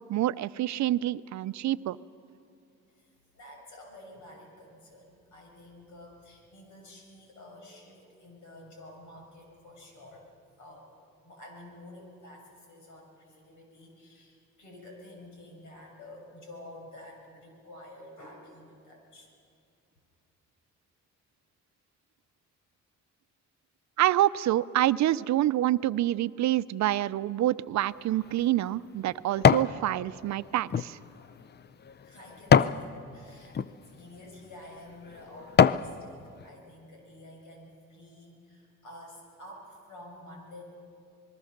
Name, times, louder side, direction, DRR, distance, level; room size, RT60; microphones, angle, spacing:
voice 1, 0.1-2.0 24.0-31.0, right 14 dB, 65° right, 15 dB, 0.6 m, -27 dB
voice 2, 2.9-10.3 10.6-10.9 11.2-19.3 32.0-40.6, left 1 dB, 75° left, 1 dB, 6.7 m, -50 dB
sound 1, 27.9-29.8 30.2-32.8 33.4-33.7 34.4-34.5 35.0-35.9 36.4-36.5, left 7 dB, 35° left, 0.5 m, -25 dB
26.0 x 21.0 x 6.6 m, 2.5 s
cardioid pair, 90°, 30 cm